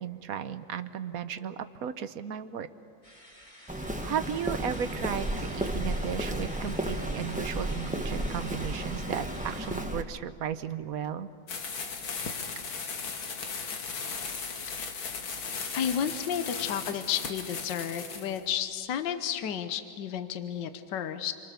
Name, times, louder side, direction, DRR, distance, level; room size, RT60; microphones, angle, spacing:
voice 1, 0.0-2.7 4.0-11.3 11.7-11.9, right 8 dB, 55° right, 11 dB, 1.1 m, -35 dB
sound 1, 3.0-9.9, equal, 15° left, 4.2 m, -47 dB
Walk footsteps, 3.7-10.0, right 1 dB, 5° right, 0.8 m, -33 dB
sound 2, 11.5-18.4, left 5 dB, 85° left, 2.5 m, -37 dB
voice 2, 14.8-15.2 15.7-21.3, left 9 dB, 70° left, 9 dB, 1.6 m, -32 dB
28.5 x 24.0 x 6.9 m, 2.3 s
omnidirectional pair, 2.1 m